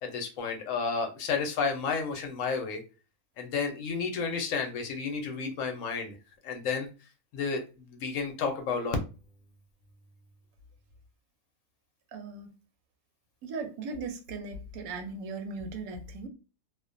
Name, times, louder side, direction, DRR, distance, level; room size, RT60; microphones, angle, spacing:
voice 1, 0.0-2.8 3.4-6.1 6.4-6.9 7.3-9.0, left 5 dB, 70° left, 0.9 m, -31 dB
voice 2, 12.1-12.5 13.4-16.3, right 3 dB, 80° right, 1.0 m, -38 dB
2.5 x 2.1 x 2.4 m
omnidirectional pair, 1.5 m